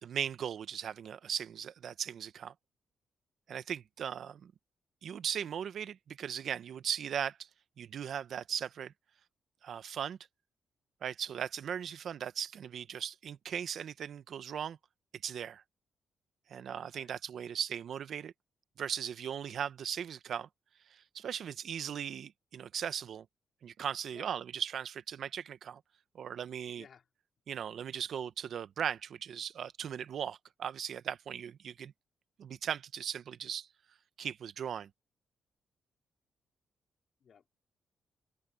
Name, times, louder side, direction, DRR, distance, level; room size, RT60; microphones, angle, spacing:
voice 1, 0.0-2.5 3.5-4.5 5.0-7.5 7.8-8.9 9.6-10.2 11.0-14.8 15.2-15.6 16.5-18.3 18.8-20.5 20.9-23.2 23.6-25.8 26.1-26.8 27.5-31.9 32.4-33.7 34.2-34.9, right 8 dB, 65° right, 0.9 m, -38 dB
voice 2, 26.7-27.0 37.2-37.6, left 7 dB, 60° left, 4.5 m, -57 dB
open air
cardioid pair, 90°, 0 cm